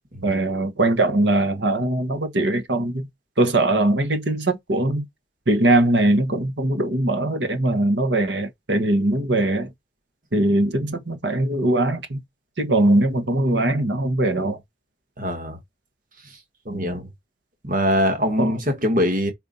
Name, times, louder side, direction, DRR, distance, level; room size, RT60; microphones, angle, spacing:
voice 1, 0.2-3.1 3.4-5.1 5.5-9.7 10.3-12.2 12.6-14.6 16.7-17.0 18.4-18.6, right 1 dB, 85° right, 1.3 m, -21 dB
voice 2, 15.2-15.6 16.7-17.1 17.6-19.3, equal, 50° right, 1.6 m, -22 dB
5.2 x 4.4 x 4.2 m
head